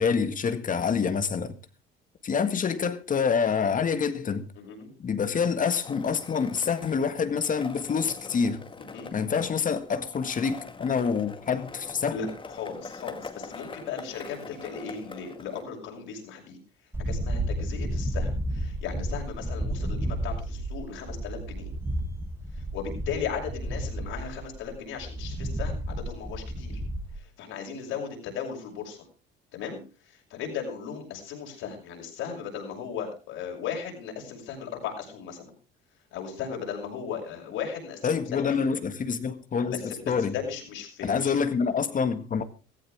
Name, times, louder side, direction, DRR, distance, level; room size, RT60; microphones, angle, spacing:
voice 1, 0.0-1.5 2.2-4.5 5.0-8.6 9.1-12.2 38.0-40.3 41.0-42.4, left 6 dB, 40° left, 1.8 m, -27 dB
voice 2, 4.6-4.9 8.8-9.1 12.1-12.3 12.6-16.6 17.0-21.7 22.7-26.8 27.4-29.0 29.5-29.8 30.3-35.5 36.1-38.6 39.6-41.4, left 7 dB, 75° left, 6.3 m, -36 dB
Skateboard, 5.8-15.6, left 4 dB, 25° left, 2.0 m, -43 dB
sound 1, 16.9-27.2, right 1 dB, 10° right, 2.5 m, -32 dB
16.5 x 15.0 x 3.6 m
supercardioid pair, 80°, 21 cm